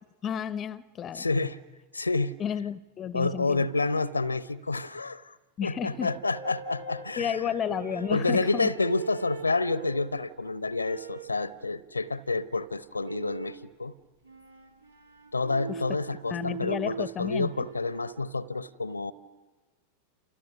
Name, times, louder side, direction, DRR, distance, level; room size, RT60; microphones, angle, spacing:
voice 1, 0.2-1.3 2.4-3.7 5.6-6.1 7.2-8.7 15.7-15.8 16.3-17.7, left 8 dB, 25° left, 0.7 m, -32 dB
voice 2, 1.1-1.6 1.9-2.3 3.1-5.4 5.6-7.5 7.9-13.9 15.3-19.1, left 3 dB, 80° left, 0.8 m, -29 dB
sound 1, 6.0-10.2 10.8-11.4 13.0-13.7 14.2-18.2, right 6 dB, 75° right, 2.3 m, -42 dB
29.0 x 29.0 x 6.2 m
figure-of-eight pair, 90°, 0 cm